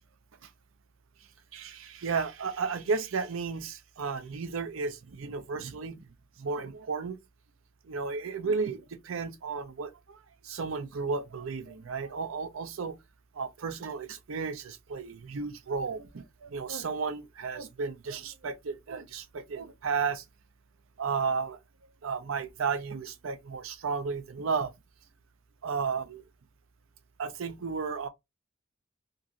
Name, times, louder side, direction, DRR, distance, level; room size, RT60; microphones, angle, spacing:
voice 1, 1.5-6.1 6.4-7.2 7.8-13.0 13.3-20.2 21.0-21.6 22.0-24.7 25.6-26.2 27.2-28.1, right 5 dB, 75° right, 0.5 m, -33 dB
3.0 x 2.5 x 2.5 m
head